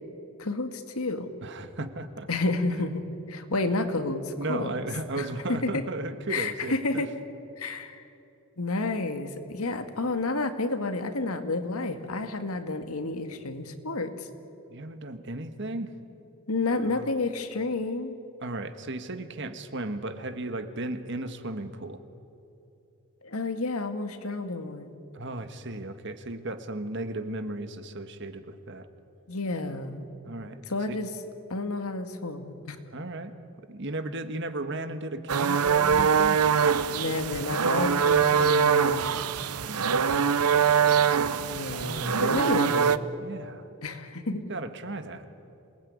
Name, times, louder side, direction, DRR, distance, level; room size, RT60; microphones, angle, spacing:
voice 1, 0.4-1.3 2.3-3.0 3.3-4.8 5.2-5.8 6.3-7.1 7.6-8.0 8.6-14.3 16.5-18.2 23.2-25.0 29.3-30.0 30.7-31.1 31.5-32.8 36.9-39.1 41.5-43.0 43.8-44.4, left 2 dB, 75° left, 8 dB, 2.0 m, -30 dB
voice 2, 1.4-2.3 4.4-7.0 14.7-15.9 16.7-17.2 18.4-22.0 25.1-28.9 30.2-30.6 30.9-31.0 32.9-33.3 33.7-36.4 39.5-40.2 41.7-42.9 43.2-43.7 44.3-45.2, right 2 dB, 55° right, 9 dB, 1.6 m, -35 dB
sound 1, 35.3-43.0, right 6 dB, 90° right, 0.8 m, -23 dB
27.5 x 20.0 x 9.6 m, 2.8 s
head